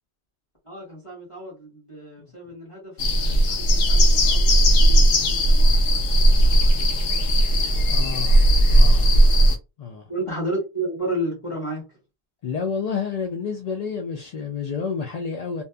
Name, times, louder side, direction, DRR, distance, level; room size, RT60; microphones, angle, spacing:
voice 1, 0.7-6.0 6.3-7.2 10.1-11.8, right 1 dB, 30° left, 1.2 m, -33 dB
sound 1, 3.0-9.6, right 1 dB, 90° left, 0.9 m, -17 dB
voice 2, 7.8-9.2 9.8-10.1 12.4-15.6, left 6 dB, 65° left, 0.4 m, -30 dB
2.6 x 2.5 x 2.2 m
omnidirectional pair, 1.2 m